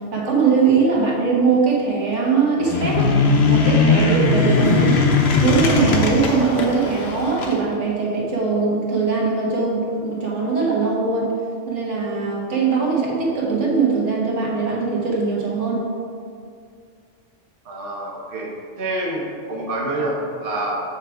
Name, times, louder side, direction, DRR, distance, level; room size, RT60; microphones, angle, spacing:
voice 1, 0.1-3.1 3.5-5.0 5.4-11.3 11.7-15.8, right 4 dB, 75° right, -3 dB, 1.5 m, -21 dB
sound 1, 2.6-7.6, left 4 dB, 60° left, 1.0 m, -18 dB
voice 2, 17.6-18.5 18.8-20.8, right 1 dB, 50° right, -3 dB, 1.0 m, -27 dB
7.3 x 3.4 x 4.8 m, 2.2 s
omnidirectional pair, 1.2 m